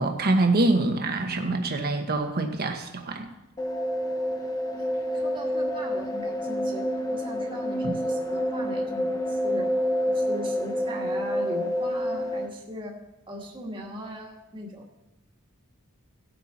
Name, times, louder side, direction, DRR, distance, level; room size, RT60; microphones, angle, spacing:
voice 1, 0.0-3.3 7.8-7.9, right 2 dB, 45° right, 4 dB, 1.4 m, -25 dB
sound 1, 3.6-12.5, equal, 15° left, 1.0 m, -28 dB
voice 2, 5.1-6.8 7.1-9.7 10.1-13.0 13.3-14.9, equal, 25° right, -2 dB, 2.0 m, -39 dB
17.0 x 8.3 x 4.4 m, 0.97 s
head